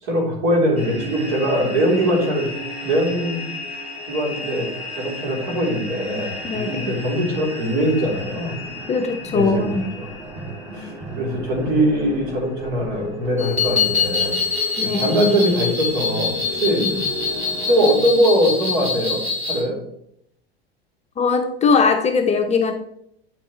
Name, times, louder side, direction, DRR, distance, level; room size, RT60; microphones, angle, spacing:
voice 1, 0.0-2.5 2.8-3.4 4.0-4.7 5.0-8.6 9.3-10.1 10.7-14.4 14.8-16.8 17.7-19.2 19.5-19.8, equal, 55° right, 0 dB, 3.7 m, -21 dB
sound 1, 0.8-17.9, left 1 dB, 20° right, 2.9 m, -33 dB
voice 2, 6.4-6.9 8.9-9.8 14.8-15.4 16.8-16.9 21.2-22.7, left 4 dB, 20° left, 5 dB, 0.7 m, -20 dB
sound 2, 13.4-19.6, left 5 dB, 90° right, 3.1 m, -24 dB
9.2 x 7.4 x 3.2 m, 0.72 s
figure-of-eight pair, 80°, 31 cm